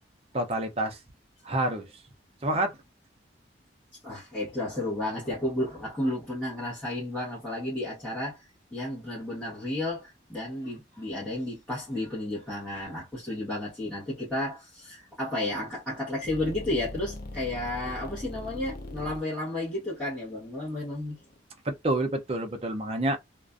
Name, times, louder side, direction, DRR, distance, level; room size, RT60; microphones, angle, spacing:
voice 1, 0.3-1.0 1.4-1.9 2.4-2.8 21.6-23.2, right 1 dB, 30° right, 0.5 m, -28 dB
voice 2, 4.0-21.2, left 1 dB, 5° left, 1.0 m, -32 dB
sound 1, 16.2-21.4, left 1 dB, 50° left, 0.5 m, -41 dB
2.4 x 2.1 x 2.4 m
head